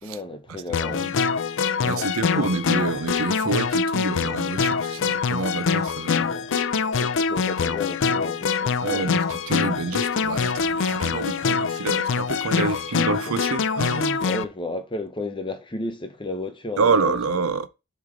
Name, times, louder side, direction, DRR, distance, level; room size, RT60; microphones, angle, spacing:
voice 1, 0.0-1.1 1.8-2.4 6.2-6.5 7.0-9.2 12.6-12.7 13.3-13.4 13.9-17.2, left 2 dB, 20° left, 0.8 m, -33 dB
sound 1, 0.7-14.4, left 5 dB, 60° left, 0.5 m, -24 dB
voice 2, 1.8-6.3 8.8-14.3 16.8-17.7, right 4 dB, 65° right, 0.7 m, -27 dB
7.1 x 3.2 x 5.0 m
head